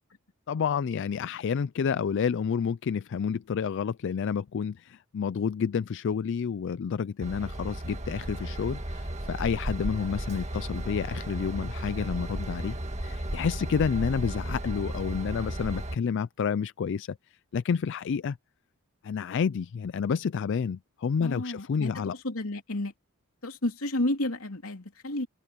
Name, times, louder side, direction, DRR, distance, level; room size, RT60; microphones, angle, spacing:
voice 1, 0.5-12.8 13.0-17.2 17.5-18.4 19.0-22.1, left 6 dB, 55° left, 0.4 m, -29 dB
Train / Engine, 7.2-15.9, right 1 dB, 30° right, 1.8 m, -34 dB
voice 2, 21.2-22.9 23.4-25.3, left 1 dB, 75° left, 3.1 m, -31 dB
open air
head